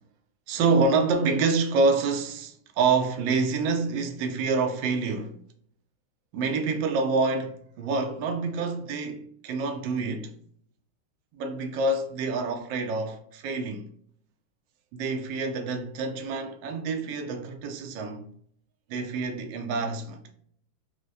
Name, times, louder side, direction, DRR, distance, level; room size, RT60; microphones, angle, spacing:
voice 1, 0.5-5.4 6.3-10.3 11.3-13.9 14.9-18.3 18.9-20.2, right 4 dB, 70° right, 1.3 m, -27 dB
4.7 x 2.1 x 2.6 m
omnidirectional pair, 2.2 m